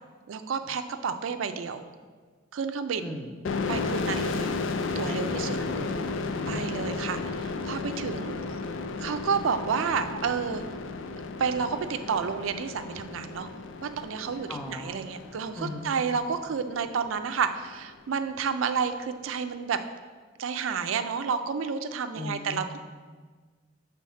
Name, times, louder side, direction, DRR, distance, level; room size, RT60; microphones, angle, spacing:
voice 1, 0.3-1.8 2.5-3.1 3.7-4.5 5.0-5.6 6.5-8.3 9.0-10.6 11.4-13.5 13.8-19.8 20.4-22.8, right 6 dB, 85° right, 9 dB, 0.4 m, -30 dB
voice 2, 3.0-3.4 5.0-7.1 14.5-15.0 15.6-15.9 22.1-22.7, left 1 dB, 10° left, 4 dB, 0.4 m, -39 dB
sound 1, 3.4-16.9, left 3 dB, 75° left, 0.4 m, -33 dB
6.4 x 3.4 x 5.6 m, 1.5 s
head